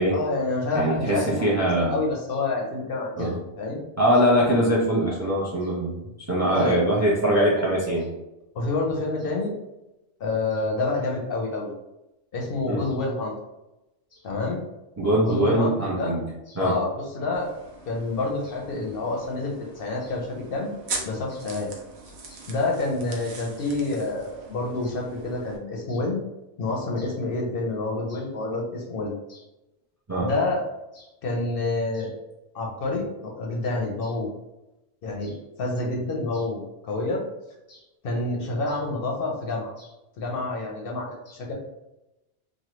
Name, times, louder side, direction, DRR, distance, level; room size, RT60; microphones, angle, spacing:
voice 1, 0.1-1.5 1.9-3.8 6.5-6.8 8.5-9.5 10.2-11.7 12.3-13.3 14.2-14.6 15.2-16.1 16.6-17.5 17.9-20.7 21.0-21.7 22.5-26.2 26.6-29.1 30.2-30.6 31.2-32.1 32.5-34.3 35.0-37.2 38.0-39.7 40.2-41.5, left 2 dB, 60° left, -1 dB, 0.7 m, -28 dB
voice 2, 0.7-1.9 3.2-3.4 4.0-6.0 6.3-8.1 12.7-12.8 15.0-16.2 16.5-16.8 22.3-22.4 30.1-30.3 35.2-35.3 37.7-37.8, right 1 dB, 25° right, -4 dB, 0.4 m, -22 dB
Peeling a Banana, 17.3-25.6, right 3 dB, 70° right, 0.9 m, -41 dB
3.0 x 2.2 x 2.9 m, 0.95 s
omnidirectional pair, 1.2 m